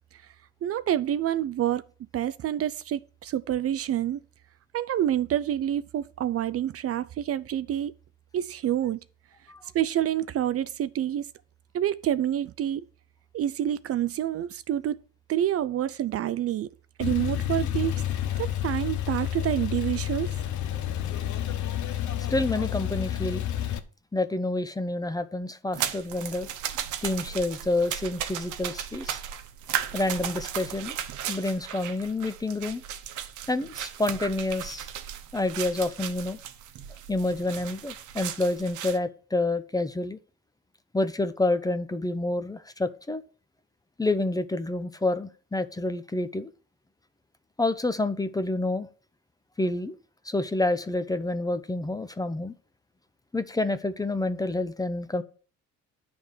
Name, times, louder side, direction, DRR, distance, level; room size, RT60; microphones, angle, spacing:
voice 1, 0.6-1.8 2.1-4.2 4.7-7.9 8.3-9.0 9.7-11.3 11.7-12.8 13.3-15.0 15.3-16.7 17.0-18.0 18.4-20.4, right 11 dB, 50° right, 0.4 m, -27 dB
Male speech man speaking / Car / Idling, 17.0-23.8, left 11 dB, 75° left, 0.8 m, -30 dB
voice 2, 22.3-23.4 24.1-26.5 27.0-29.2 29.9-31.0 31.3-32.8 33.5-34.9 35.3-36.4 37.1-40.2 40.9-43.2 44.0-46.5 47.6-48.9 49.6-49.9 50.3-52.5 53.3-55.2, left 2 dB, 10° left, 0.6 m, -28 dB
sound 1, 25.7-39.0, right 10 dB, 80° right, 0.8 m, -36 dB
9.3 x 3.5 x 6.5 m
cardioid pair, 90°, 30 cm